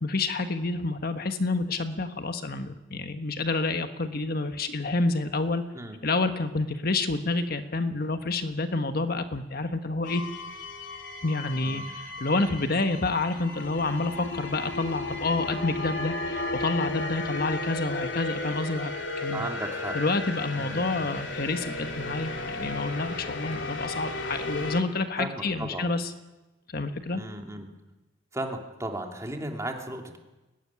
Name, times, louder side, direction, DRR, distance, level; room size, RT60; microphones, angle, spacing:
voice 1, 0.0-5.6 6.0-10.2 11.2-18.9 19.2-19.5 19.9-26.1 26.7-27.2, left 3 dB, 55° left, 8 dB, 1.4 m, -28 dB
sound 1, 10.0-24.8, left 2 dB, 70° left, 3.5 m, -34 dB
voice 2, 19.3-20.0 20.6-21.0 25.2-25.9 27.1-27.7 28.3-30.2, right 1 dB, 15° right, 2 dB, 3.0 m, -35 dB
22.0 x 18.5 x 9.8 m, 1.1 s
head